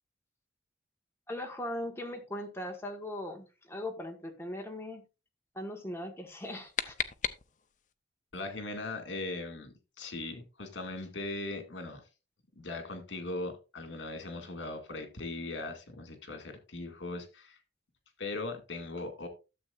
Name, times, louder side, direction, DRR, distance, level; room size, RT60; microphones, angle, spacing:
voice 1, 1.3-5.0 5.5-7.0, left 1 dB, 15° left, 1.5 m, -39 dB
sound 1, 6.3-7.9, left 8 dB, 40° left, 0.6 m, -37 dB
voice 2, 8.3-12.0 12.6-17.6 18.2-19.3, left 2 dB, 75° left, 2.3 m, -39 dB
12.5 x 7.5 x 2.5 m
head